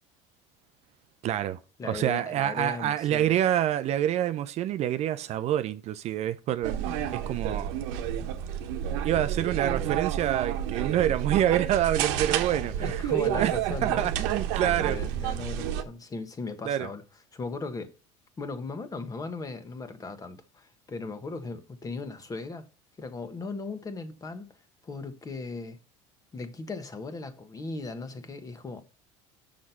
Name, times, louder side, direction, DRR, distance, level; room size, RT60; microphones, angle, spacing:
voice 1, 1.2-1.6 1.8-7.8 9.0-13.0 13.4-13.5 13.8-15.0 16.7-16.9, right 11 dB, 45° right, 0.5 m, -27 dB
voice 2, 1.8-3.4 12.7-14.1 14.6-17.0 17.3-17.9 18.4-22.6 23.0-24.5 24.8-25.8 26.3-28.8, left 3 dB, 25° left, 1.3 m, -37 dB
sound 1, 6.6-15.8, right 10 dB, 75° right, 1.0 m, -30 dB
6.3 x 6.1 x 5.7 m
supercardioid pair, 110°, 15 cm